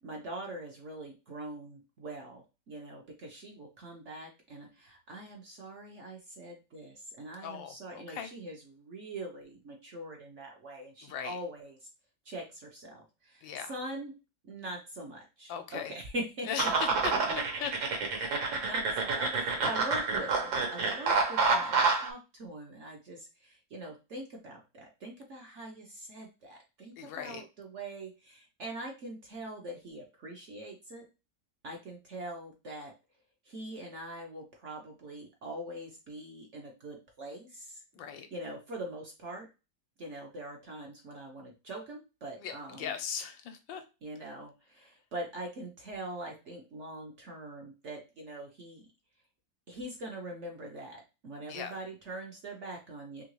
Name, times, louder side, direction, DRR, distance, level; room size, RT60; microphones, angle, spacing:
voice 1, 0.0-11.9 12.2-14.1 14.4-16.7 18.6-31.0 31.6-32.9 33.5-37.8 38.3-39.5 40.0-42.9 44.0-48.9 49.7-53.2, right 1 dB, 55° right, 1 dB, 0.8 m, -43 dB
voice 2, 7.4-8.3 11.0-11.4 13.4-13.7 15.5-16.0 16.5-18.7 27.0-27.4 37.9-38.3 42.4-43.8 51.5-51.8, left 8 dB, 80° left, 7 dB, 1.4 m, -39 dB
sound 1, 16.6-22.1, right 4 dB, 80° right, 1.7 m, -29 dB
3.8 x 3.1 x 3.1 m, 0.29 s
omnidirectional pair, 2.1 m